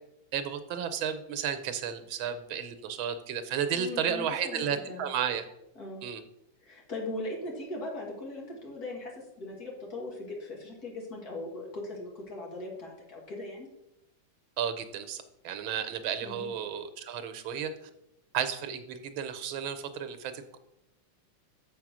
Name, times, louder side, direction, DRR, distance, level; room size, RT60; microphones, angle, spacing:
voice 1, 0.3-5.4 6.0-6.2 14.6-17.7 18.3-20.6, right 8 dB, 85° right, 9 dB, 1.6 m, -33 dB
voice 2, 3.7-5.1 5.8-6.0 6.6-9.1 9.4-13.7 16.2-16.5, left 2 dB, 50° left, -1 dB, 2.6 m, -39 dB
7.1 x 5.5 x 6.1 m, 0.85 s
omnidirectional pair, 2.2 m